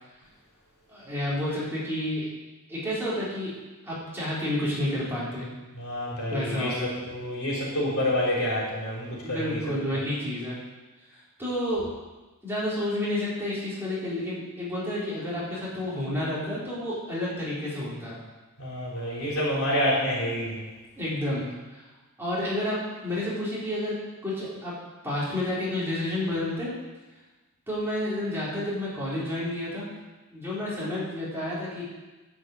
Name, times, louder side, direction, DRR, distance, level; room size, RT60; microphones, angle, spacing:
voice 1, 0.9-2.3 2.7-3.5 3.8-5.5 6.3-6.9 9.2-10.6 11.4-11.8 12.4-18.2 21.0-21.5 21.7-21.8 22.2-22.8 23.0-23.9 24.2-24.7 25.0-26.7 27.7-29.9 30.3-31.8, left 1 dB, 10° right, -9 dB, 4.1 m, -30 dB
voice 2, 5.8-9.6 9.9-10.0 18.6-20.6, left 1 dB, 70° left, -5 dB, 4.4 m, -28 dB
10.5 x 6.1 x 7.9 m, 1.2 s
head